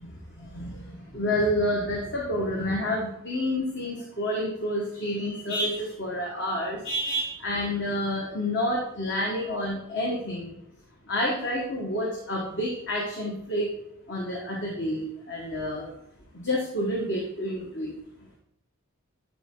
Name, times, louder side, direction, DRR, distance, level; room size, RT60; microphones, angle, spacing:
voice 1, 0.0-10.6 11.1-13.7 14.1-15.9 16.3-17.9, left 1 dB, 50° left, -2 dB, 1.5 m, -29 dB
12.5 x 4.2 x 3.8 m, 0.78 s
head